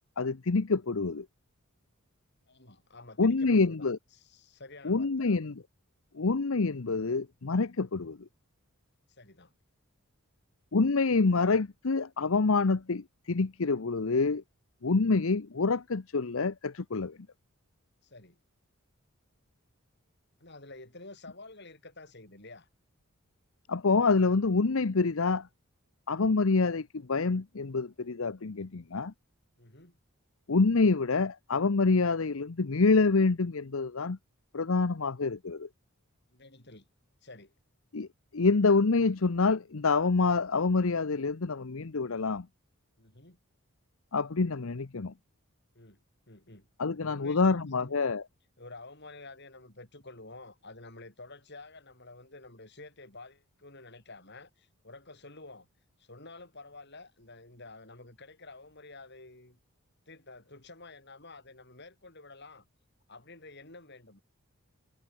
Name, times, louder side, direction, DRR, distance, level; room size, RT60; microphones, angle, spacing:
voice 1, 0.2-1.3 3.2-4.0 4.8-5.5 6.1-8.2 10.7-14.4 14.8-17.2 23.7-25.5 26.1-29.1 30.5-34.2 34.5-35.7 37.9-38.1 38.3-42.5 44.1-45.1 46.8-48.2, left 4 dB, 70° left, 0.8 m, -26 dB
voice 2, 2.5-5.5 9.2-9.5 14.9-15.2 18.0-18.4 20.4-22.7 29.6-30.0 36.3-36.9 37.2-37.5 43.0-43.4 45.7-46.0 46.3-46.7 46.9-47.9 48.6-55.7 56.0-59.6 60.1-62.7 63.1-64.2, left 2 dB, 50° left, 6.7 m, -50 dB
head